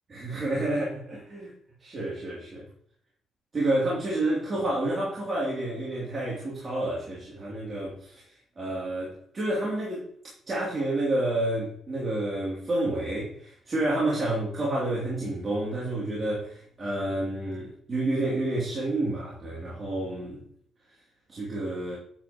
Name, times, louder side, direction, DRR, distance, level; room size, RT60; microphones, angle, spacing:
voice 1, 0.1-1.5 1.8-2.6 3.5-8.2 8.6-10.1 10.5-20.4 21.3-22.0, right 1 dB, 35° right, -6 dB, 2.7 m, -29 dB
8.6 x 7.8 x 2.9 m, 0.62 s
cardioid pair, 90°, 0 cm